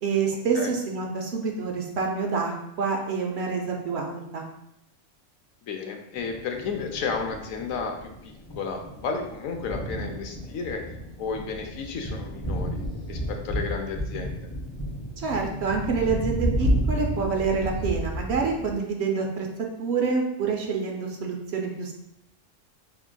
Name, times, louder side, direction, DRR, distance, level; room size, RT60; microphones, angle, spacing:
voice 1, 0.0-4.4 15.2-19.5 19.8-21.9, right 5 dB, 60° right, 1 dB, 0.8 m, -27 dB
voice 2, 5.7-10.8 11.2-14.5, left 5 dB, 85° left, 4 dB, 1.0 m, -33 dB
Thunder, 6.1-18.7, right 1 dB, 20° left, 1.5 m, -31 dB
4.6 x 3.4 x 2.2 m, 0.79 s
omnidirectional pair, 1.3 m